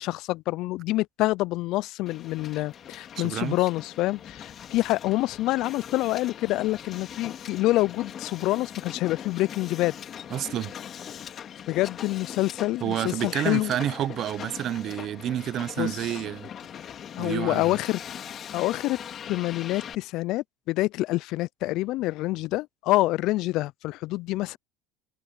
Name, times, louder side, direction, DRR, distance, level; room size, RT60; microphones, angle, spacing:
voice 1, 0.0-9.9 11.7-13.8 15.8-15.9 17.2-18.0 18.5-19.0 19.3-24.6, left 18 dB, 65° left, 0.3 m, -27 dB
Hiss, 2.1-19.9, left 9 dB, 45° left, 2.9 m, -41 dB
voice 2, 3.2-3.6 10.3-10.7 12.8-16.5 17.2-17.8, right 12 dB, 50° right, 0.7 m, -29 dB
supercardioid pair, 105°, 0 cm